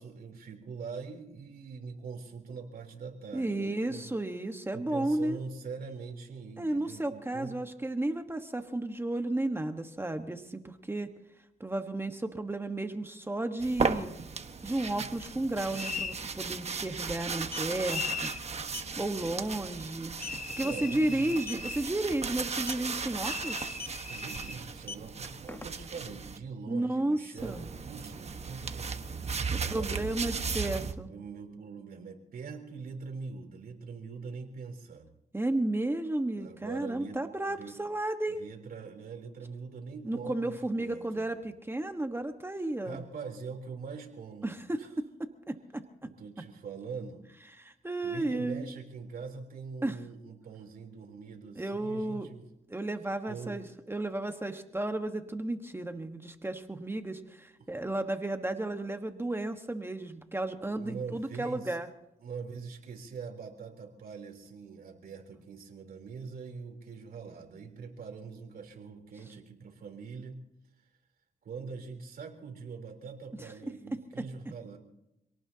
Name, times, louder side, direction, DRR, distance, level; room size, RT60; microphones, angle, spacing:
voice 1, 0.0-4.1 4.7-7.6 20.6-21.3 24.1-30.0 31.1-35.1 36.4-37.2 37.4-37.8 38.4-41.3 42.8-44.9 46.0-47.2 48.0-52.5 53.3-53.6 57.6-57.7 60.6-61.8 62.2-70.4 71.4-74.8, right 5 dB, 70° right, 2 dB, 3.7 m, -43 dB
voice 2, 3.3-5.4 6.6-11.1 11.6-14.1 14.6-18.3 19.0-20.1 20.6-23.7 26.7-27.7 29.5-31.1 35.3-38.4 40.0-43.0 44.4-45.8 47.6-48.7 49.8-50.0 51.6-52.3 52.7-61.9 73.4-73.5, right 1 dB, 15° right, 6 dB, 1.4 m, -33 dB
sound 1, 13.6-26.4 27.4-30.9, right 5 dB, 45° right, 1.4 m, -36 dB
sound 2, 15.7-16.2 17.9-18.4 20.2-21.9 23.2-24.6, left 5 dB, 50° left, 1.2 m, -38 dB
sound 3, 17.5-17.7 18.7-18.9 19.4-19.5 19.9-20.0 20.2-20.5 21.4-21.7 22.6-22.9 23.7-24.1 24.7-26.0, left 4 dB, 15° left, 1.0 m, -41 dB
27.5 x 18.0 x 2.9 m, 0.87 s
cardioid pair, 75°, 16 cm